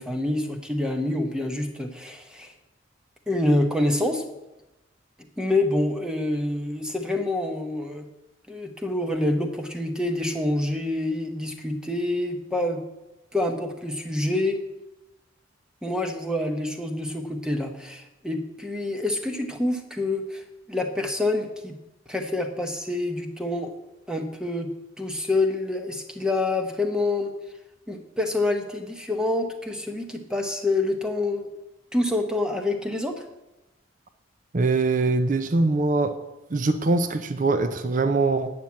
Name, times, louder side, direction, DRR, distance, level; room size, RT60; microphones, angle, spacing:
voice 1, 0.0-2.5 3.3-4.2 5.4-8.1 8.5-12.8 13.3-14.6 15.8-21.7 22.1-23.7 24.1-24.7 25.0-27.3 27.9-31.5 31.9-33.2, left 2 dB, 5° right, 5 dB, 1.0 m, -27 dB
voice 2, 34.5-36.1 36.5-38.5, right 3 dB, 40° right, 9 dB, 0.6 m, -22 dB
9.1 x 6.1 x 8.4 m, 0.97 s
head